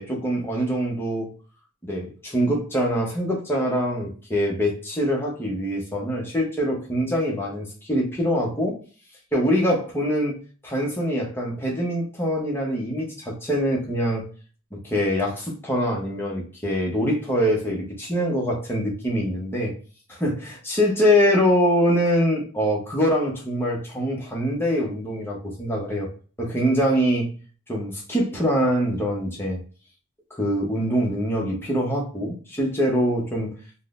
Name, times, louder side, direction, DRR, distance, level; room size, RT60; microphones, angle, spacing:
voice 1, 0.0-1.3 1.8-8.8 9.3-14.3 14.7-19.7 20.2-26.1 26.4-27.3 27.7-29.6 30.3-33.5, equal, 10° left, 0.7 m, -24 dB
3.6 x 2.0 x 2.4 m
head